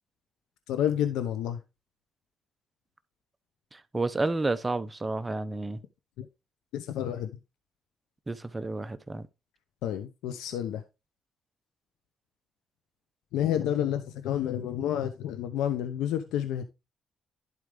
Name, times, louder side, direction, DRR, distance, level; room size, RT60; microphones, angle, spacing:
voice 1, 0.7-1.6 6.2-6.3 6.7-7.4 9.8-10.8 13.3-16.6, left 10 dB, 90° left, 0.7 m, -29 dB
voice 2, 3.7-5.8 8.3-9.3, right 2 dB, 20° right, 0.8 m, -30 dB
11.0 x 4.7 x 3.8 m
cardioid pair, 80°, 0 cm